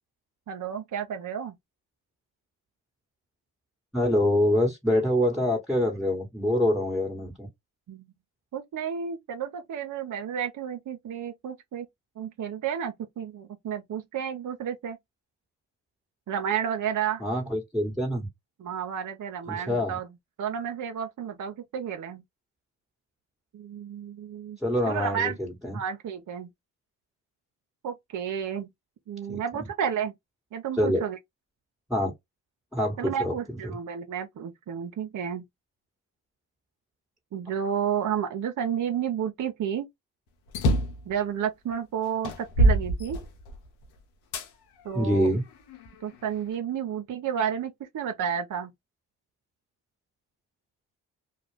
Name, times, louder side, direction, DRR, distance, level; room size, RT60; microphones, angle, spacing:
voice 1, 0.5-1.5 7.9-8.0 8.5-11.9 12.2-15.0 16.3-17.2 18.6-20.1 20.4-22.2 23.5-24.6 24.9-25.4 25.7-26.5 27.8-28.7 29.1-30.1 30.5-31.2 33.0-35.4 37.3-39.9 41.1-43.2 44.8-45.3 46.0-48.7, right 8 dB, 55° right, 0.7 m, -31 dB
voice 2, 3.9-7.5 17.2-18.3 19.5-19.9 24.6-25.3 25.6-25.8 29.3-29.4 30.8-31.0 31.9-32.1 32.7-33.3 44.9-45.4, left 1 dB, ahead, 1.2 m, -25 dB
sound 1, 40.5-41.0 41.7-41.8 42.2-43.7 44.3-44.5 45.2-46.3, right 1 dB, 90° left, 0.8 m, -24 dB
2.4 x 2.2 x 3.3 m
supercardioid pair, 50°, 37 cm